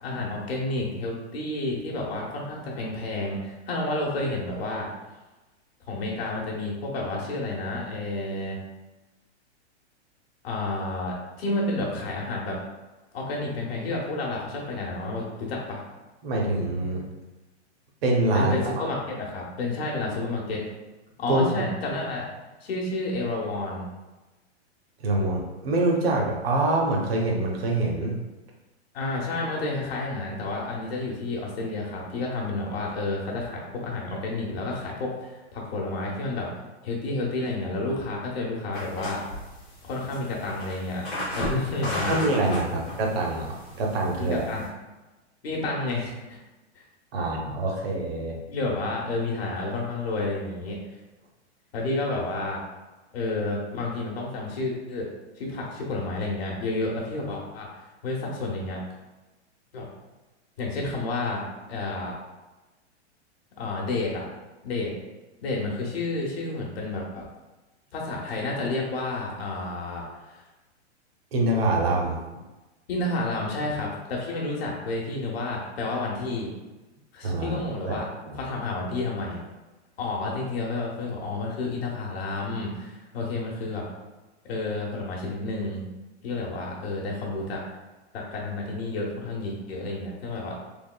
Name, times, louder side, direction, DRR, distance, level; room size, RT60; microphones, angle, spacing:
voice 1, 0.0-4.9 5.9-8.6 10.4-12.6 13.1-15.8 18.3-20.6 21.2-22.3 22.6-23.9 28.9-36.5 36.8-39.2 39.8-41.0 41.3-42.2 44.2-44.6 45.4-46.4 48.5-50.8 51.7-52.6 53.1-55.1 55.4-57.7 58.0-58.8 59.7-59.9 60.6-62.1 63.6-64.3 64.6-64.9 65.4-67.2 67.9-70.4 72.9-76.5 77.1-79.4 80.0-83.8 84.4-85.8 86.2-87.6 88.1-90.5, left 2 dB, 60° left, -2 dB, 0.9 m, -30 dB
voice 2, 16.2-17.0 18.0-18.6 21.3-21.6 25.0-28.2 42.1-44.5 47.1-48.4 71.3-72.2 77.2-77.6 77.9-78.0 78.3-78.4, right 2 dB, 60° right, 0 dB, 0.8 m, -25 dB
sound 1, 38.7-44.7, left 1 dB, 10° left, 0.6 m, -35 dB
3.5 x 2.9 x 2.2 m, 1.1 s
hypercardioid pair, 180°, 35 cm